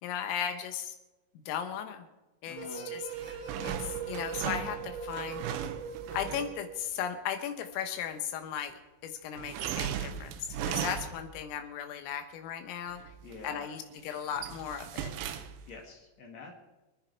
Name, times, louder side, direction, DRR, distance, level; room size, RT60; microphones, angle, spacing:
voice 1, 0.0-1.0 1.5-2.1 2.4-3.0 3.6-5.4 6.1-13.0 13.4-15.1, left 8 dB, 85° left, 6 dB, 3.9 m, -36 dB
voice 2, 2.5-2.9 13.2-13.7 15.7-16.5, left 4 dB, 55° left, -1 dB, 2.0 m, -47 dB
sound 1, 2.6-6.9, right 6 dB, 40° right, 2.7 m, -40 dB
sound 2, 3.1-6.6 9.4-11.4 12.9-13.5 13.9-15.8, right 9 dB, 75° right, 2.9 m, -38 dB
26.0 x 10.0 x 4.6 m, 1.1 s
omnidirectional pair, 5.8 m